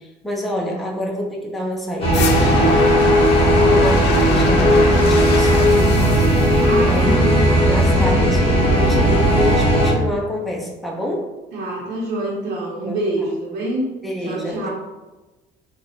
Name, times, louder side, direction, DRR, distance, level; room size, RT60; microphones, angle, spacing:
voice 1, 0.0-3.0 3.7-6.3 6.8-7.4 7.6-11.3 12.8-13.0 14.0-14.7, equal, ahead, -2 dB, 0.6 m, -27 dB
sound 1, 2.0-9.9, equal, 35° left, 0.9 m, -16 dB
sound 2, 2.1-7.1, left 5 dB, 80° left, 0.5 m, -27 dB
voice 2, 6.6-7.4 11.5-13.9 14.2-14.7, right 1 dB, 85° right, -4 dB, 0.9 m, -26 dB
3.2 x 2.3 x 3.9 m, 1.1 s
cardioid pair, 110°, 17 cm